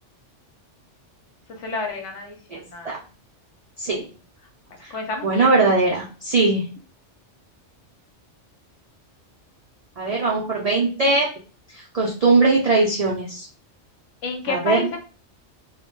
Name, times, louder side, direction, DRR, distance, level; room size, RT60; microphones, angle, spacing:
voice 1, 1.6-3.0 4.7-5.5 14.2-15.0, left 4 dB, 80° left, 3 dB, 1.0 m, -30 dB
voice 2, 5.2-6.6 10.0-11.3 11.7-13.5 14.5-14.9, right 3 dB, 80° right, -3 dB, 0.3 m, -20 dB
2.1 x 2.1 x 2.9 m, 0.37 s
omnidirectional pair, 1.2 m